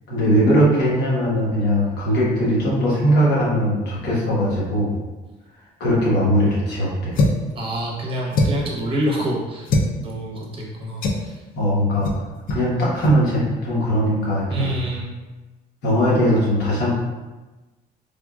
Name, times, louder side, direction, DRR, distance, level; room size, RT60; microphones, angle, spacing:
voice 1, 0.1-4.9 5.8-7.2 11.6-12.1 12.5-14.7 15.8-16.9, equal, 80° left, -6 dB, 1.1 m, -20 dB
sound 1, 7.1-7.5 8.3-8.7 9.7-9.9 11.0-11.3 12.0-12.2 12.5-12.6 13.0-13.2, left 2 dB, 55° left, 0.4 m, -21 dB
voice 2, 7.5-11.4 14.5-15.0, equal, 30° right, -3 dB, 0.8 m, -27 dB
3.5 x 2.2 x 2.3 m, 1.2 s
cardioid pair, 110°, 17 cm